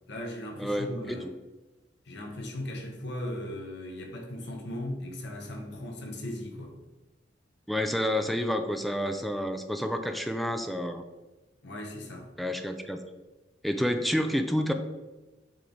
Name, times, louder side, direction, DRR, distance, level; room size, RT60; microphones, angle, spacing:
voice 1, 0.1-1.3 2.0-6.8 11.6-12.3, left 1 dB, 65° left, 1.1 m, -37 dB
voice 2, 0.6-1.2 7.7-11.0 12.4-13.0 13.6-14.7, equal, ahead, 0.4 m, -29 dB
7.5 x 3.3 x 4.0 m
head